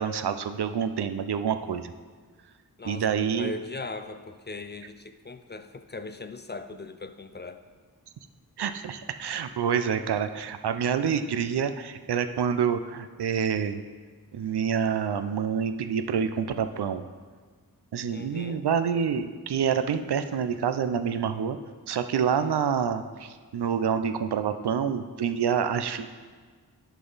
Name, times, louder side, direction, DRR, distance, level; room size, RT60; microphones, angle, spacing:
voice 1, 0.0-1.9 2.8-3.5 8.6-13.8 14.3-17.0 17.9-21.6 21.9-26.1, right 7 dB, 85° right, 9 dB, 0.5 m, -27 dB
voice 2, 2.8-7.6 18.1-18.6, left 3 dB, 30° left, 9 dB, 0.3 m, -39 dB
10.5 x 4.0 x 4.0 m, 1.5 s
wide cardioid pair, 65°, 39 cm